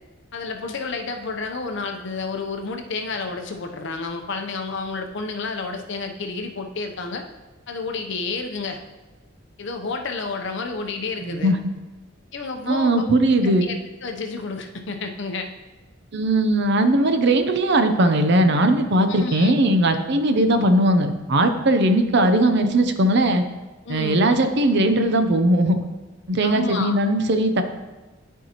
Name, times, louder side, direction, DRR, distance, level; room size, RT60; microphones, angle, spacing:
voice 1, 0.3-7.2 7.7-8.8 9.6-11.5 12.3-13.0 13.6-15.5 19.1-19.5 23.8-24.2 26.4-27.0, left 4 dB, 60° left, 4 dB, 0.7 m, -30 dB
voice 2, 11.3-11.6 12.7-13.7 16.1-23.4 23.9-25.8 26.3-27.6, right 1 dB, 55° right, 8 dB, 0.6 m, -19 dB
11.5 x 4.6 x 3.0 m, 1.2 s
head